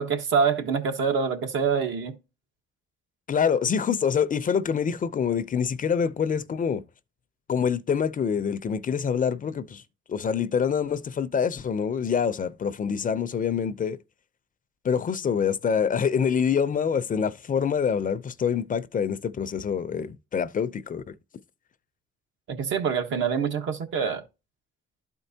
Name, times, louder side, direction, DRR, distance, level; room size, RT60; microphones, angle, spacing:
voice 1, 0.0-2.1 22.5-24.2, right 6 dB, 70° right, 1.4 m, -25 dB
voice 2, 3.3-6.8 7.5-9.8 10.1-14.0 14.8-21.2, left 7 dB, 40° left, 0.6 m, -26 dB
12.0 x 4.5 x 2.8 m
cardioid pair, 95°, 21 cm